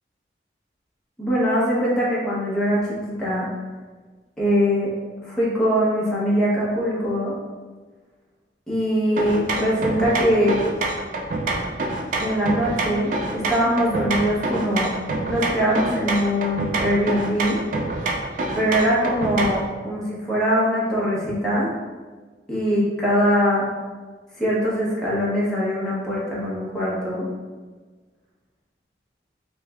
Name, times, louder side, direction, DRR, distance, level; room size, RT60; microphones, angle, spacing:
voice 1, 1.2-3.5 4.4-4.9 5.2-7.3 8.7-10.6 12.2-15.0 15.3-17.6 18.5-21.7 22.5-23.7 24.4-27.3, equal, 5° left, -8 dB, 0.8 m, -22 dB
sound 1, 9.2-19.7, right 2 dB, 45° right, 0.3 m, -27 dB
3.2 x 3.1 x 2.3 m, 1.4 s
head